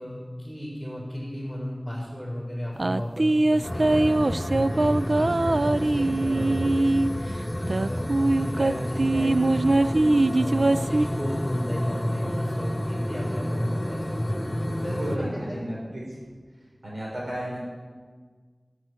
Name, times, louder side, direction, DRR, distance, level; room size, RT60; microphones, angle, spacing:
voice 1, 0.0-4.1 4.4-6.5 6.8-14.0 14.8-15.6, equal, ahead, -7 dB, 4.7 m, -34 dB
sound 1, 2.8-7.1 7.7-11.1, right 2 dB, 65° right, 0.3 m, -22 dB
sound 2, 3.6-15.2, equal, 25° left, 1.6 m, -30 dB
voice 2, 6.2-6.7 14.8-16.2 16.8-17.6, right 1 dB, 90° right, -4 dB, 5.4 m, -33 dB
12.0 x 8.1 x 9.3 m, 1.5 s
wide cardioid pair, 45°, 0 cm